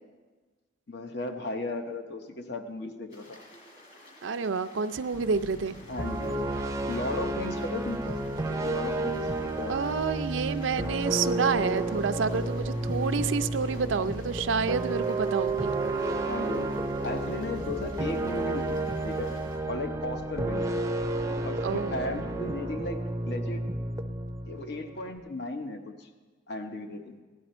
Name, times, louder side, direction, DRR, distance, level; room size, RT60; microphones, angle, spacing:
voice 1, 0.9-3.4 5.9-6.5 6.9-8.2 8.6-9.8 16.3-19.3 19.7-20.7 21.4-23.6 24.5-26.1 26.5-27.2, left 2 dB, 60° left, 6 dB, 1.0 m, -35 dB
Stream, 3.1-19.6, left 1 dB, 40° left, 3.8 m, -53 dB
voice 2, 4.2-5.8 9.7-15.7 21.6-21.9, right 5 dB, 75° right, 11 dB, 0.5 m, -29 dB
sound 1, 5.1-22.6, left 2 dB, 75° left, 0.6 m, -47 dB
sound 2, 6.0-25.2, right 2 dB, 15° right, 0.5 m, -31 dB
16.5 x 11.0 x 4.3 m, 1.3 s
head